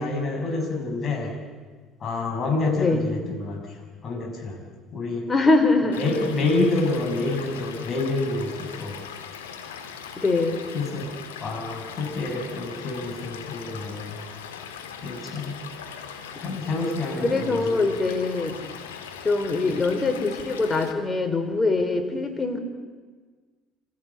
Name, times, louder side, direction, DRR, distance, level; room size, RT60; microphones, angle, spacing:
voice 1, 0.0-1.3 2.0-3.8 4.0-4.6 4.9-5.3 6.0-9.0 10.7-11.1 11.4-14.2 15.0-15.6 16.4-17.8, left 2 dB, 45° left, 3 dB, 6.4 m, -28 dB
voice 2, 5.3-6.3 10.2-10.6 17.2-18.5 19.2-22.6, left 3 dB, 25° left, 7 dB, 4.1 m, -23 dB
Stream / Liquid, 5.9-20.9, left 7 dB, 90° left, 2.0 m, -40 dB
26.0 x 16.5 x 8.4 m, 1.5 s
hypercardioid pair, 65°, 0 cm